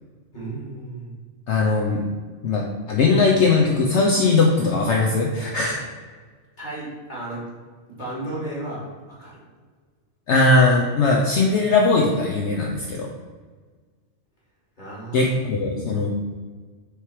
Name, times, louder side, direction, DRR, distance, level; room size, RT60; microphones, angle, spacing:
voice 1, 0.3-1.1 6.6-7.4 8.0-9.4 14.8-16.0, right 2 dB, 35° left, -6 dB, 2.1 m, -34 dB
voice 2, 1.5-2.0 2.4-5.8 10.3-13.1 15.1-16.1, left 3 dB, 65° left, 0 dB, 0.9 m, -19 dB
6.6 x 3.1 x 4.7 m, 1.5 s
omnidirectional pair, 1.4 m